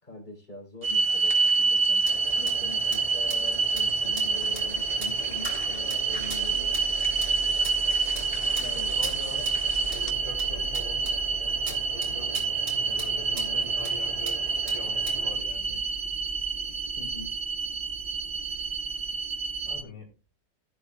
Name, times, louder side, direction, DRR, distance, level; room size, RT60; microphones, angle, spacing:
voice 1, 0.0-6.8 8.6-8.9 9.3-9.5 13.3-13.7 17.0-17.3 19.7-19.9, left 3 dB, 25° left, 0 dB, 4.3 m, -43 dB
Lluvia Suspenso, 0.8-10.1, left 4 dB, 65° left, 2.9 m, -44 dB
sound 1, 0.8-19.8, right 4 dB, 35° right, 0.9 m, -27 dB
sound 2, 2.0-15.3, right 3 dB, 55° right, 3.7 m, -41 dB
voice 2, 8.7-9.4 9.9-11.1 11.4-14.4 14.7-15.8 19.7-20.1, left 3 dB, 80° left, 2 dB, 3.7 m, -44 dB
17.5 x 8.3 x 2.4 m, 0.31 s
omnidirectional pair, 2.1 m